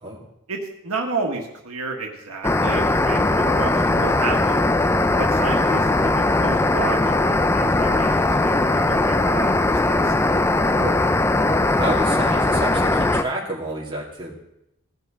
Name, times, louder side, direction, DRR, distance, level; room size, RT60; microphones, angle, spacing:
voice 1, 0.5-4.7 5.2-10.3, right 3 dB, 90° right, 1 dB, 1.6 m, -31 dB
sound 1, 2.4-13.2, left 2 dB, 10° left, 0.3 m, -19 dB
voice 2, 11.7-14.3, right 2 dB, 20° right, -5 dB, 2.5 m, -30 dB
17.0 x 5.7 x 5.0 m, 0.84 s
head